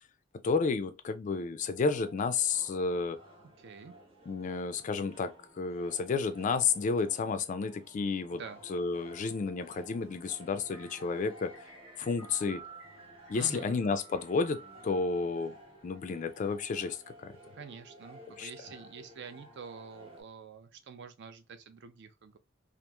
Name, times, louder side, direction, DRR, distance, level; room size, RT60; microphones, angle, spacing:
voice 1, 0.4-3.2 4.3-8.4 8.7-11.5 12.0-12.6 13.3-15.6 15.8-17.3 18.4-18.5, left 4 dB, 40° left, 0.3 m, -31 dB
sound 1, 1.6-20.2, right 1 dB, 25° right, 0.9 m, -55 dB
voice 2, 3.6-3.9 8.3-8.6 13.3-13.8 17.5-22.4, right 5 dB, 60° right, 0.4 m, -47 dB
sound 2, 10.7-16.1, right 4 dB, 90° right, 1.3 m, -54 dB
2.9 x 2.4 x 2.2 m
head